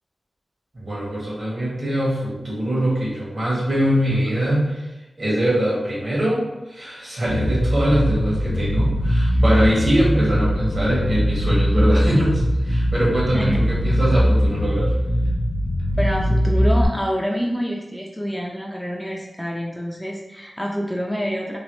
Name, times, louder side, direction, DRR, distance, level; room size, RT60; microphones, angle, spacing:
voice 1, 0.7-4.9 5.2-14.9, equal, 60° right, -5 dB, 1.4 m, -22 dB
Bass guitar, 7.3-16.9, equal, 85° left, 0.5 m, -20 dB
voice 2, 16.0-21.6, equal, 5° left, -2 dB, 0.5 m, -26 dB
3.1 x 2.3 x 3.0 m, 1.0 s
cardioid pair, 55°, 0 cm